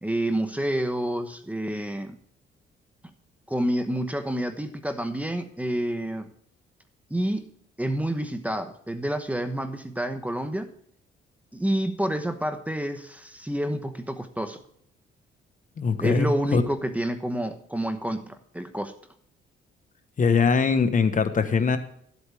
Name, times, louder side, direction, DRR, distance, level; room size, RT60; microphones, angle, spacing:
voice 1, 0.0-2.2 3.5-6.3 7.1-7.5 7.8-10.7 11.5-14.6 16.0-18.9, right 1 dB, 5° right, 8 dB, 1.0 m, -28 dB
voice 2, 15.8-16.6 20.2-21.8, left 5 dB, 40° left, 10 dB, 1.2 m, -22 dB
12.5 x 8.2 x 3.5 m, 0.66 s
cardioid pair, 90°, 20 cm